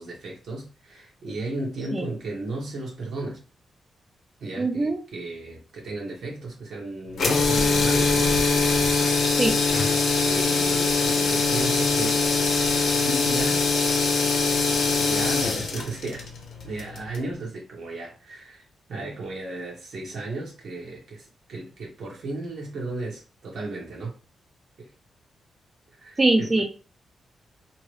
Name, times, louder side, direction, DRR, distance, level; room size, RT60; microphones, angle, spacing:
voice 1, 0.0-3.4 4.4-8.4 8.9-9.2 10.1-12.2 12.8-13.7 15.0-16.3 16.6-18.6 18.9-24.2 24.8-24.9 26.0-26.6, right 2 dB, 75° right, 1.2 m, -35 dB
voice 2, 4.6-5.0 9.4-9.6 26.2-26.6, right 2 dB, 30° right, 0.7 m, -22 dB
sound 1, 7.1-17.3, left 4 dB, 70° left, 0.6 m, -22 dB
2.9 x 2.2 x 3.1 m
cardioid pair, 60°, 0 cm